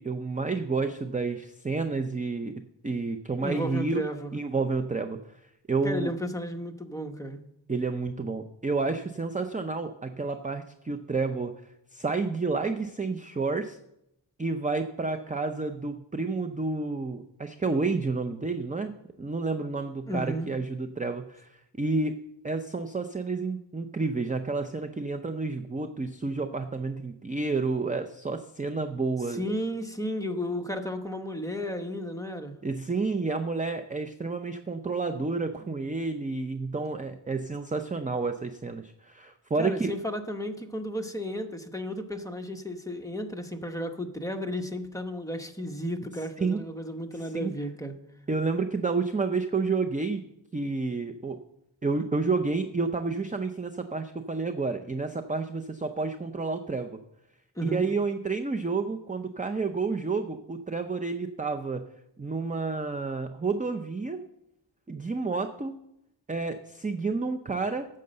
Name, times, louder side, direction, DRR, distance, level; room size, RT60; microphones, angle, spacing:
voice 1, 0.0-2.5 2.8-4.0 4.3-5.2 5.7-6.1 7.7-11.5 11.9-13.8 14.4-18.9 19.2-21.5 21.8-29.4 32.6-39.9 46.4-46.6 47.1-47.5 48.3-50.2 50.5-51.4 51.8-57.0 57.6-61.8 62.2-64.2 64.9-65.7 66.3-67.9, right 3 dB, 15° right, 7 dB, 0.5 m, -30 dB
voice 2, 3.4-4.3 5.8-7.4 20.1-20.5 29.3-32.6 39.6-47.9 57.6-57.8, equal, 5° left, 4 dB, 1.0 m, -33 dB
9.4 x 6.6 x 7.7 m, 0.82 s
wide cardioid pair, 100°, 47 cm